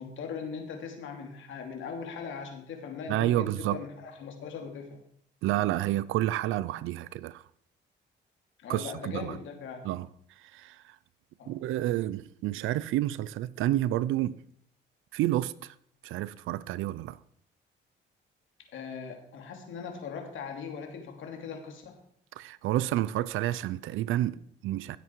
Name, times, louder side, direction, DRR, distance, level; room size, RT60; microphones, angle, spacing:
voice 1, 0.0-5.0 8.6-9.8 11.4-11.6 18.7-22.0, left 6 dB, 75° left, 2.8 m, -40 dB
voice 2, 3.1-3.8 5.4-7.4 8.7-9.4 9.8-10.1 10.4-11.0 11.5-14.4 15.1-15.7 16.0-17.2 22.4-25.0, right 14 dB, 90° right, 0.6 m, -29 dB
16.5 x 8.1 x 4.7 m
cardioid pair, 90°, 20 cm